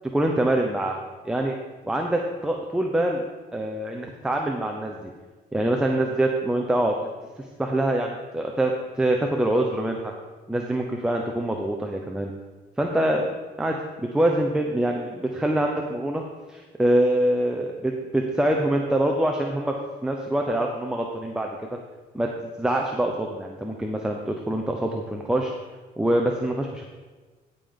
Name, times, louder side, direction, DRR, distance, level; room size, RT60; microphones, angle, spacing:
voice 1, 0.1-1.0 1.2-1.5 1.8-3.2 3.5-5.1 5.5-7.0 7.4-10.1 10.5-12.3 12.8-13.3 13.6-16.2 16.5-19.7 20.0-21.6 22.1-22.3 22.6-25.5 26.0-26.8, right 1 dB, 5° right, 1 dB, 0.7 m, -25 dB
16.0 x 5.3 x 3.8 m, 1.3 s
cardioid pair, 110°, 17 cm